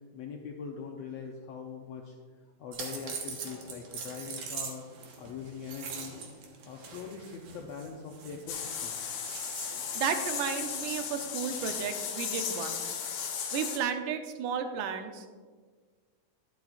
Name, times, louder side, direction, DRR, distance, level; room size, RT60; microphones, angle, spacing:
voice 1, 0.1-2.1 2.6-4.9 5.2-6.2 6.6-8.9, left 6 dB, 85° left, 1 dB, 1.4 m, -42 dB
sound 1, 2.7-11.9, right 5 dB, 60° right, 2.0 m, -43 dB
sound 2, 8.5-13.8, left 7 dB, 65° left, 2.0 m, -35 dB
voice 2, 9.6-13.0 13.5-15.3, right 7 dB, 80° right, 7 dB, 2.2 m, -33 dB
12.0 x 10.5 x 2.4 m, 1.5 s
omnidirectional pair, 3.7 m